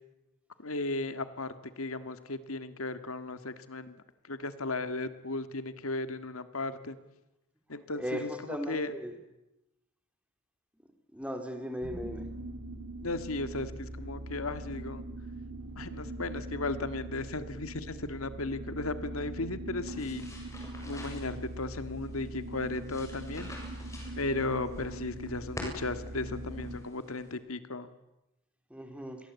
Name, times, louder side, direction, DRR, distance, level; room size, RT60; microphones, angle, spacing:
voice 1, 0.6-4.0 4.3-7.0 7.7-8.9 13.0-15.0 15.8-20.3 20.8-23.5 24.2-27.9, left 2 dB, 90° left, 11 dB, 1.9 m, -35 dB
voice 2, 8.0-9.2 11.1-12.2 28.7-29.2, equal, 5° right, 6 dB, 3.5 m, -37 dB
sound 1, 11.8-26.8, right 1 dB, 75° right, 4.1 m, -42 dB
sound 2, 19.9-27.3, left 1 dB, 15° left, 7.3 m, -47 dB
29.0 x 22.5 x 8.4 m, 0.95 s
head